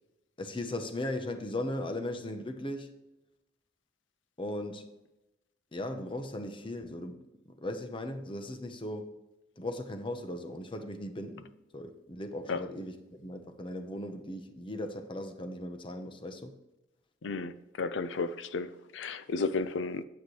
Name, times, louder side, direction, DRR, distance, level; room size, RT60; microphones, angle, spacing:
voice 1, 0.4-2.9 4.4-4.9 5.7-9.1 9.6-16.5, left 1 dB, 30° left, 0.9 m, -38 dB
voice 2, 17.2-20.0, left 4 dB, 85° left, 0.5 m, -33 dB
9.4 x 8.0 x 3.2 m
head